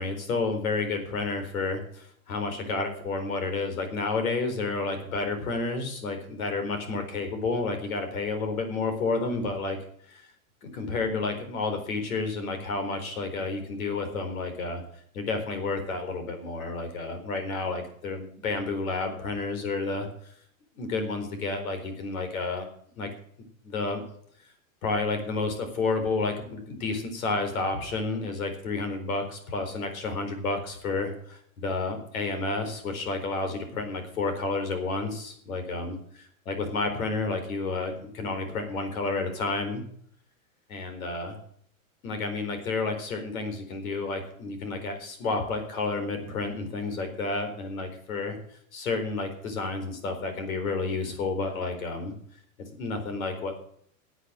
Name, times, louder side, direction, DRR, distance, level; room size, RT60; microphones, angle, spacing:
voice 1, 0.0-9.8 10.1-10.3 10.6-14.8 15.1-20.3 20.7-22.7 23.0-23.1 23.6-24.0 24.8-39.8 40.7-41.4 42.0-48.4 48.7-52.1 52.8-53.6, left 3 dB, 85° left, 6 dB, 4.4 m, -30 dB
11.0 x 8.2 x 8.9 m, 0.62 s
supercardioid pair, 160°, 41 cm